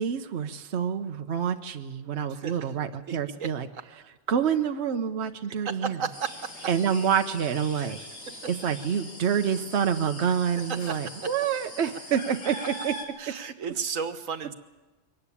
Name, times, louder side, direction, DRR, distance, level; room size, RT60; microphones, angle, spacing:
voice 1, 0.0-3.7 4.3-6.0 6.7-8.0 8.5-12.9, right 8 dB, 60° right, 7 dB, 1.2 m, -27 dB
voice 2, 2.3-2.7 3.1-3.5 5.6-6.3 7.7-7.9 10.9-11.0 13.2-14.5, right 6 dB, 85° right, 9 dB, 1.6 m, -33 dB
sound 1, 6.1-13.0, left 1 dB, 85° left, 3.5 m, -42 dB
23.5 x 19.0 x 8.4 m, 1.2 s
omnidirectional pair, 1.3 m